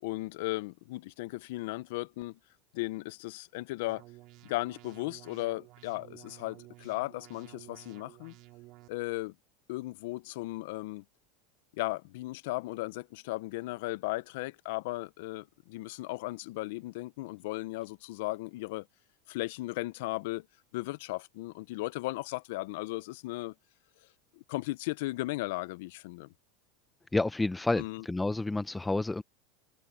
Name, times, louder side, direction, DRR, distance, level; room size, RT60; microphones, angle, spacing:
voice 1, 0.0-2.4 2.7-4.0 4.4-8.3 8.9-9.3 9.7-11.0 11.7-18.9 19.3-20.5 20.7-23.5 24.3-26.3 27.8-28.0, left 20 dB, 75° left, 0.6 m, -36 dB
sound 1, 3.9-8.9, right 19 dB, 55° right, 2.8 m, -53 dB
voice 2, 27.1-29.2, left 2 dB, 10° left, 0.5 m, -29 dB
supercardioid pair, 115°, 0 cm